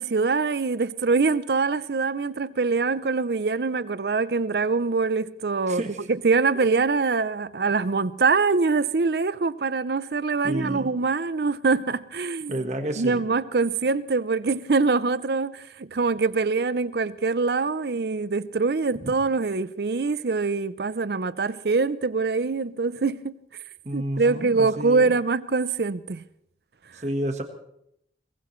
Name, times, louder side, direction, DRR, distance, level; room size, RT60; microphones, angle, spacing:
voice 1, 0.0-5.8 6.1-12.7 13.0-23.4 23.9-26.2 26.9-27.0, right 4 dB, 65° right, 0.6 m, -24 dB
voice 2, 5.7-6.0 10.4-10.9 12.5-13.2 19.0-19.1 23.8-25.1 27.0-27.4, right 1 dB, 40° right, 1.4 m, -30 dB
22.0 x 19.5 x 3.2 m
head